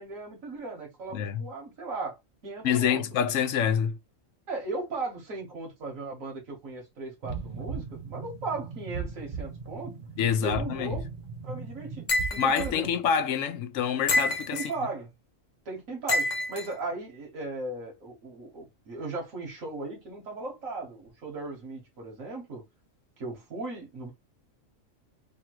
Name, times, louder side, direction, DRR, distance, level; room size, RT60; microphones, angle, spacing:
voice 1, 0.0-2.2 2.4-3.0 4.5-10.0 10.4-11.1 11.4-12.9 14.5-15.1 15.7-22.6 23.2-24.1, right 3 dB, 85° right, 1.7 m, -37 dB
voice 2, 1.1-1.4 2.6-4.0 10.2-11.0 12.4-14.7, left 8 dB, 80° left, 1.0 m, -26 dB
sound 1, 7.2-12.9, right 5 dB, 40° right, 0.9 m, -38 dB
sound 2, 12.1-12.7 14.1-14.7 16.1-16.7, left 1 dB, 40° left, 0.7 m, -27 dB
3.5 x 2.4 x 4.5 m
omnidirectional pair, 1.4 m